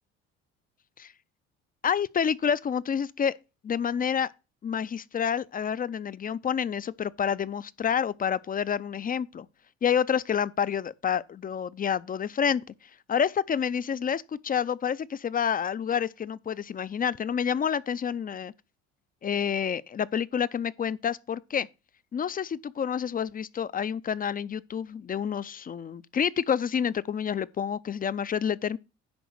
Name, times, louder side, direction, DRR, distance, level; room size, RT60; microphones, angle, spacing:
voice 1, 1.8-3.3 3.6-4.3 4.6-9.5 9.8-12.6 13.1-18.5 19.2-21.7 22.1-28.8, left 7 dB, 30° left, 0.5 m, -28 dB
10.5 x 3.8 x 6.3 m
supercardioid pair, 80°, 31 cm